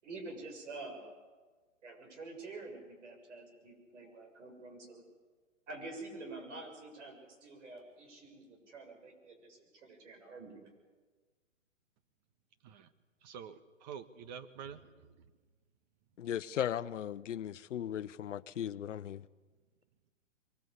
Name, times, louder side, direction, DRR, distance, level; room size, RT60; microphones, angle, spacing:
voice 1, 0.0-1.2 1.8-5.0 5.7-10.7, right 2 dB, 65° right, 7.2 m, -48 dB
voice 2, 13.2-14.9, right 7 dB, 35° right, 1.4 m, -47 dB
voice 3, 16.2-19.3, left 10 dB, 65° left, 0.9 m, -37 dB
23.0 x 21.0 x 8.1 m
hypercardioid pair, 145°, 39 cm